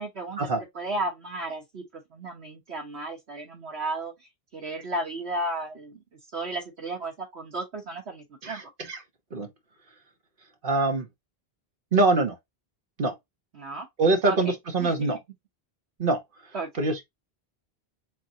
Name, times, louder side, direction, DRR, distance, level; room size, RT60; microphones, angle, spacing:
voice 1, 0.0-0.4 0.7-6.0 6.3-8.6 13.5-13.9 14.2-14.5 14.8-15.2 16.5-16.7, right 2 dB, 90° right, 1.5 m, -34 dB
voice 2, 8.4-9.0 9.3-9.5 10.6-11.1 11.9-12.4 13.0-13.1 14.0-15.2 16.0-16.2 16.8-17.0, right 2 dB, 55° right, 1.4 m, -24 dB
4.7 x 3.8 x 2.7 m
omnidirectional pair, 1.1 m